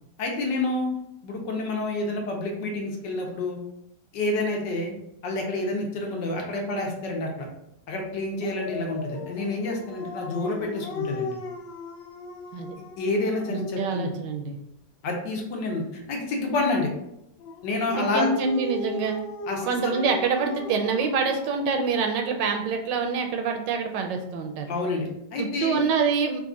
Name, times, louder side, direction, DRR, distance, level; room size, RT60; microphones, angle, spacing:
voice 1, 0.2-0.9 1.2-3.6 4.1-4.9 5.2-7.5 7.9-11.3 13.0-14.1 15.0-16.9 17.6-18.3 19.5-20.0 24.7-25.8, left 2 dB, 70° left, 0 dB, 1.4 m, -28 dB
Dog, 8.4-14.2 17.4-22.0, left 4 dB, 90° left, 1.3 m, -37 dB
voice 2, 13.5-14.6 18.0-19.2 19.6-24.7 25.4-26.4, right 5 dB, 75° right, 4 dB, 1.2 m, -26 dB
4.0 x 2.4 x 3.7 m, 0.79 s
omnidirectional pair, 2.0 m